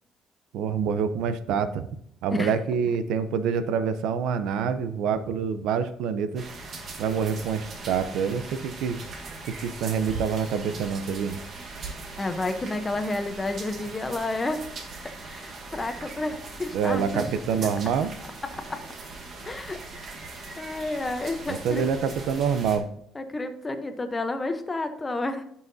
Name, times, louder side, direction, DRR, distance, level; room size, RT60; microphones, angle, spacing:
voice 1, 0.5-1.9 2.2-6.5 7.0-9.0 9.5-11.4 16.7-18.1 21.5-22.9, right 6 dB, 80° right, 12 dB, 0.6 m, -26 dB
sound 1, 6.4-22.8, right 3 dB, 45° right, 1.4 m, -40 dB
voice 2, 12.2-14.7 15.2-17.2 18.7-18.8 19.4-20.2 20.6-21.8 23.1-25.4, left 2 dB, 20° left, 8 dB, 0.8 m, -30 dB
13.0 x 5.7 x 2.7 m, 0.73 s
cardioid pair, 135°, 0 cm